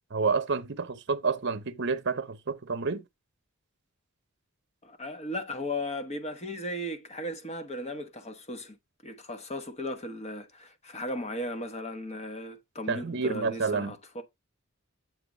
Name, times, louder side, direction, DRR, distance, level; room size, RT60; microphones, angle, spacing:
voice 1, 0.1-3.0 12.9-13.9, right 4 dB, 60° right, 0.8 m, -29 dB
voice 2, 4.8-8.8 9.0-14.2, left 1 dB, 30° left, 1.0 m, -36 dB
7.5 x 2.9 x 5.1 m
head